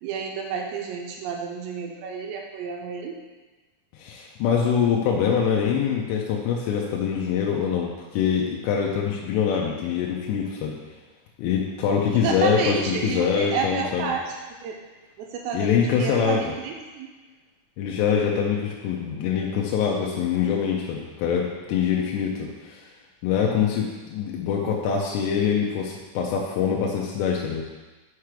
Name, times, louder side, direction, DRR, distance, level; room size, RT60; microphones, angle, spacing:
voice 1, 0.0-3.2 12.1-14.8 15.2-17.1, right 6 dB, 80° right, 1 dB, 2.7 m, -30 dB
voice 2, 3.9-10.8 11.4-14.1 15.5-16.5 17.8-22.9 23.2-27.6, left 7 dB, 80° left, -1 dB, 2.7 m, -24 dB
6.0 x 5.8 x 4.8 m, 1.2 s
omnidirectional pair, 5.2 m